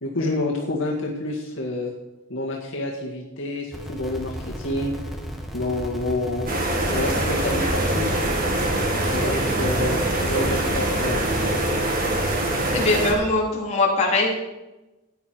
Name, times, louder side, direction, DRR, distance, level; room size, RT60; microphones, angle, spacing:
voice 1, 0.0-1.9 2.3-4.9 5.5-6.5 6.9-8.2 9.1-11.3, left 2 dB, 70° left, -2 dB, 1.8 m, -28 dB
sound 1, 3.7-11.5, equal, ahead, 1.7 m, -35 dB
sound 2, 6.5-13.1, right 1 dB, 45° right, 2.6 m, -23 dB
voice 2, 12.7-14.4, left 2 dB, 35° left, -3 dB, 3.3 m, -21 dB
14.5 x 9.6 x 4.6 m, 1.0 s
head